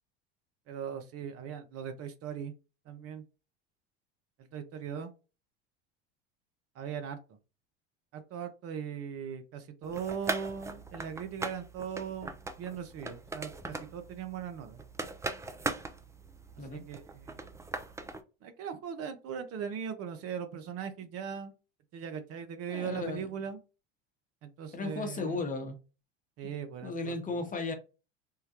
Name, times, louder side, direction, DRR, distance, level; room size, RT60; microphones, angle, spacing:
voice 1, 0.7-2.5 2.9-3.2 4.4-5.1 6.7-7.4 8.1-12.3 12.6-14.8 16.6-17.4 18.4-21.5 21.9-23.6 24.4-25.4 26.4-27.4, right 7 dB, 45° right, 0.7 m, -39 dB
sound 1, 9.8-18.2, right 3 dB, 10° right, 0.4 m, -40 dB
voice 2, 22.7-23.3 24.7-25.8 26.8-27.7, left 3 dB, 25° left, 0.9 m, -35 dB
3.6 x 2.2 x 2.9 m
hypercardioid pair, 80°, 32 cm